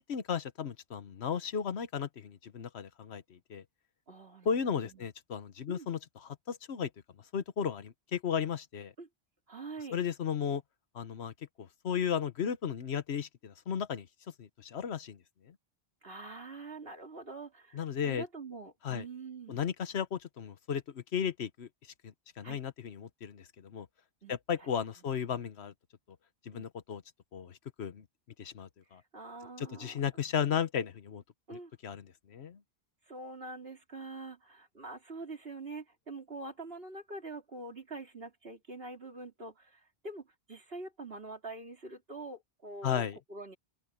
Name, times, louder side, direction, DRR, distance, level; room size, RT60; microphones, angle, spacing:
voice 1, 0.0-3.6 4.4-6.9 7.3-8.9 9.9-10.6 10.9-14.1 14.4-15.2 15.5-15.6 17.7-18.2 18.8-19.0 19.5-21.7 22.0-23.9 24.3-25.7 26.5-27.0 27.3-28.0 28.4-29.0 29.6-31.2 31.5-32.6 42.8-43.2, left 7 dB, 75° left, 1.3 m, -35 dB
voice 2, 4.1-5.1 5.7-5.9 9.0-9.1 9.5-10.0 16.0-19.6 22.4-22.6 24.2-24.7 24.9-25.0 26.5-26.7 29.1-30.0 31.5-31.7 33.1-43.6, right 3 dB, 65° right, 3.2 m, -45 dB
open air
omnidirectional pair, 1.1 m